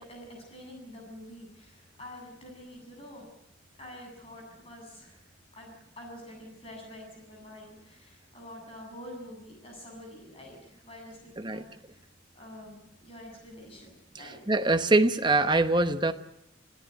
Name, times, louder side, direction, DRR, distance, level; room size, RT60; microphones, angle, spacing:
voice 1, 0.0-3.3 3.8-12.0 12.3-14.4, left 1 dB, 30° left, 1 dB, 7.8 m, -47 dB
voice 2, 14.5-16.1, right 2 dB, 20° right, 9 dB, 1.0 m, -23 dB
26.5 x 16.5 x 8.0 m, 0.83 s
head